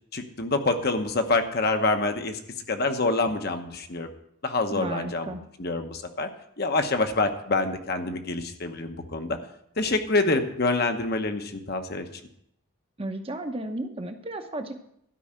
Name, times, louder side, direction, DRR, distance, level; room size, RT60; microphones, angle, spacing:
voice 1, 0.1-2.4 2.7-4.1 4.4-6.3 6.6-9.4 9.8-12.1, left 3 dB, 45° left, 6 dB, 1.0 m, -26 dB
voice 2, 4.7-5.4 13.0-14.8, right 1 dB, 25° right, 6 dB, 0.9 m, -33 dB
12.5 x 5.5 x 8.7 m, 0.74 s
head